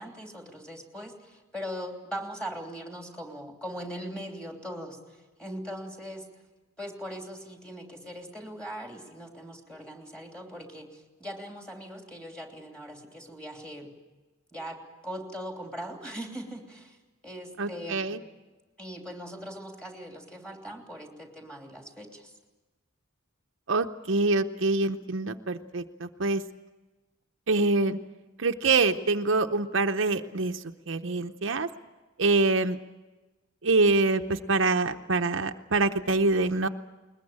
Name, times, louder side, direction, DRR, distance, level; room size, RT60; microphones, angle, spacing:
voice 1, 0.0-6.2 6.8-13.9 14.5-17.0 17.2-18.1 18.8-22.3, equal, 5° left, 2 dB, 3.0 m, -40 dB
voice 2, 17.6-18.2 23.7-26.4 27.5-28.0 28.4-31.7 32.2-32.8 33.6-36.7, right 3 dB, 65° right, 6 dB, 0.8 m, -25 dB
21.0 x 21.0 x 8.7 m, 1.2 s
head